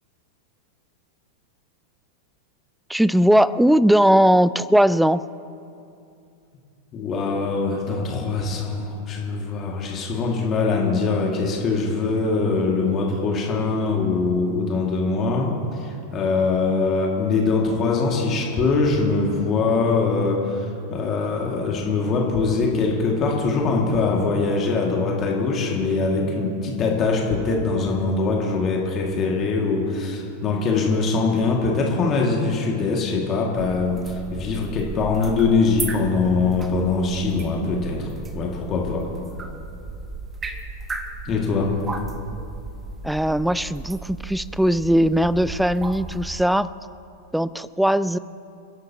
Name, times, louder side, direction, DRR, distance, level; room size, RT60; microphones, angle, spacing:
voice 1, 2.9-5.2 43.0-46.7 47.3-48.2, equal, ahead, 18 dB, 0.4 m, -19 dB
voice 2, 6.9-39.1 41.3-41.7, left 4 dB, 30° left, -1 dB, 2.2 m, -23 dB
sound 1, 33.5-46.5, right 4 dB, 15° right, 1.2 m, -35 dB
29.0 x 11.5 x 3.0 m, 2.5 s
figure-of-eight pair, 90°, 0 cm